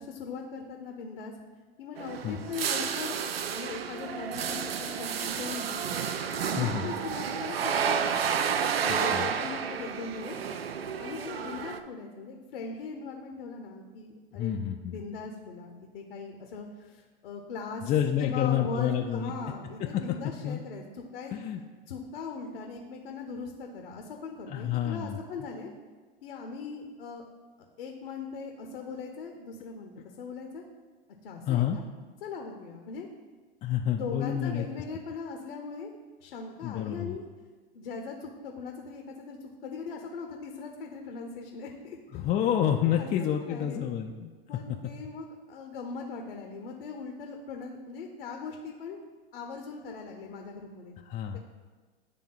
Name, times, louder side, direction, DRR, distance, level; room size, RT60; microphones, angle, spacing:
voice 1, 0.0-1.3 1.8-3.2 3.5-5.9 6.4-10.4 11.0-14.5 14.9-17.9 18.2-21.3 21.9-25.7 26.2-27.2 27.8-29.9 30.2-30.6 31.2-31.7 32.2-33.1 33.6-35.9 36.2-37.3 37.7-42.0 42.8-43.1 43.4-43.9 44.5-49.0 49.3-50.9 51.3-51.4, left 4 dB, 75° left, 3 dB, 0.8 m, -40 dB
sound 1, 2.0-11.8, right 7 dB, 85° right, 0.5 m, -31 dB
voice 2, 8.9-9.3 14.3-14.9 17.8-19.3 19.9-20.0 20.4-20.6 21.3-21.6 24.5-25.2 31.5-31.8 33.6-34.7 36.6-37.2 42.1-44.3 51.1-51.4, left 10 dB, 25° left, 2 dB, 0.4 m, -28 dB
9.5 x 3.4 x 3.8 m, 1.4 s
hypercardioid pair, 90°, 29 cm